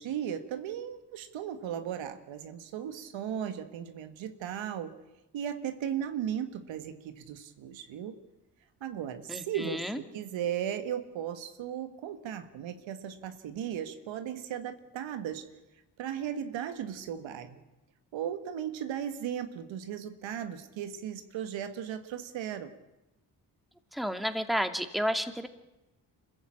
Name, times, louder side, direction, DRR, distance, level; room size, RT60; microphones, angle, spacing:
voice 1, 0.0-5.0 5.3-8.2 8.8-15.5 16.0-17.6 18.1-22.7, right 9 dB, 80° right, 9 dB, 1.6 m, -36 dB
voice 2, 9.3-10.0 23.9-25.5, equal, ahead, 7 dB, 2.6 m, -31 dB
26.0 x 15.0 x 8.8 m, 0.99 s
supercardioid pair, 45°, 45 cm